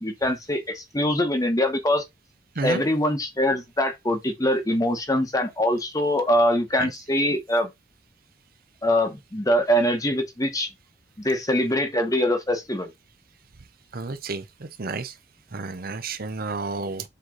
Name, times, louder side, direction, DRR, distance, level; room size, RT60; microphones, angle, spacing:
voice 1, 0.0-2.0 2.6-7.7 8.8-10.7 11.2-12.9, left 1 dB, 20° left, 1.1 m, -23 dB
voice 2, 13.9-14.4 14.8-15.1 15.5-17.0, right 3 dB, 50° right, 0.7 m, -30 dB
7.6 x 3.2 x 3.9 m
head